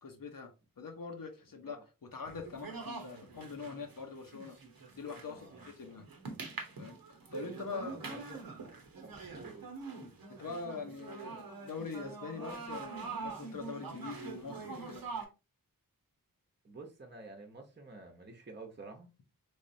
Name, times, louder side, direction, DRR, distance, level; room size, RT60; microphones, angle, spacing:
voice 1, 0.0-4.6 4.9-6.1 6.8-8.1 10.0-10.1 10.4-15.0, left 4 dB, 70° left, 0.8 m, -43 dB
sound 1, 2.2-15.2, right 4 dB, 90° right, 0.9 m, -45 dB
voice 2, 5.3-5.7 7.7-9.7 16.6-19.1, right 2 dB, 30° right, 0.8 m, -50 dB
3.3 x 3.2 x 2.6 m
wide cardioid pair, 50°, 35 cm